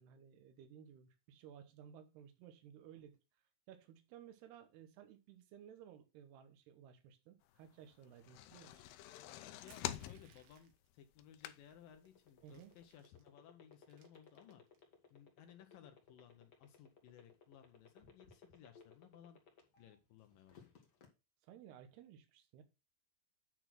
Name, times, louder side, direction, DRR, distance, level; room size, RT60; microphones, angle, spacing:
voice 1, 0.0-3.2 3.7-8.8 12.4-12.7 21.4-22.6, right 9 dB, 90° right, 3.1 m, -57 dB
sound 1, 8.0-12.0 12.4-12.5 12.8-12.9, left 13 dB, 90° left, 2.7 m, -46 dB
voice 2, 9.3-14.6 15.1-19.4 19.8-20.7, left 9 dB, 70° left, 2.3 m, -61 dB
Crushing, 9.7-10.9 11.7-11.8 12.1-13.3 13.7-14.8, right 7 dB, 70° right, 3.1 m, -67 dB
sound 2, 11.8-19.9 20.3-21.1, left 6 dB, 50° left, 1.2 m, -61 dB
9.4 x 4.1 x 6.0 m
omnidirectional pair, 4.6 m